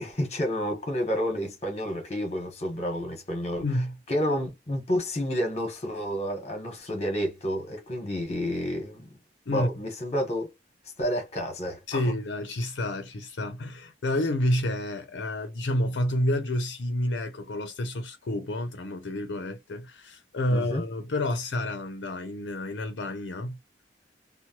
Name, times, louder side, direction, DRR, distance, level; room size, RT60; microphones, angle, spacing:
voice 1, 0.0-3.6 4.1-9.2 9.5-10.5 11.0-12.0 20.5-20.8, equal, 35° left, 1.1 m, -30 dB
voice 2, 3.6-3.9 9.5-9.7 11.9-23.6, left 1 dB, 80° left, 0.5 m, -29 dB
2.9 x 2.1 x 2.8 m
head